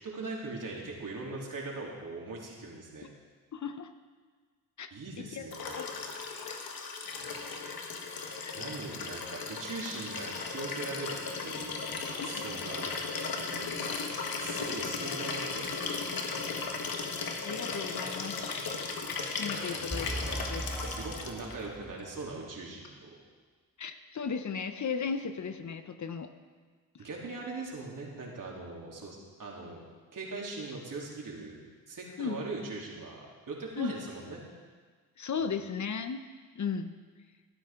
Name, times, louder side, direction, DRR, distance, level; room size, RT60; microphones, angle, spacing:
voice 1, 0.0-3.1 4.9-6.1 7.2-7.4 8.5-11.1 11.4-12.9 13.5-14.0 14.4-16.1 16.4-16.7 19.7-20.4 20.7-23.1 27.0-29.8 30.1-31.6 31.9-34.4, right 3 dB, 55° right, -3 dB, 3.5 m, -41 dB
voice 2, 3.5-3.9 4.8-4.9 5.2-5.5 5.7-6.2 6.5-6.7 8.4-8.6 12.3-12.4 17.4-18.7 19.4-20.1 20.5-20.6 23.8-26.3 26.9-27.0 32.2-32.4 33.8-33.9 35.2-36.2 36.5-36.9, left 6 dB, 50° left, 9 dB, 0.9 m, -36 dB
Liquid, 5.5-21.6 22.8-22.9, left 4 dB, 65° left, 1.6 m, -36 dB
sound 1, 19.9-22.2, right 1 dB, ahead, 2.3 m, -38 dB
15.0 x 12.0 x 3.8 m, 1.5 s
supercardioid pair, 55°, 38 cm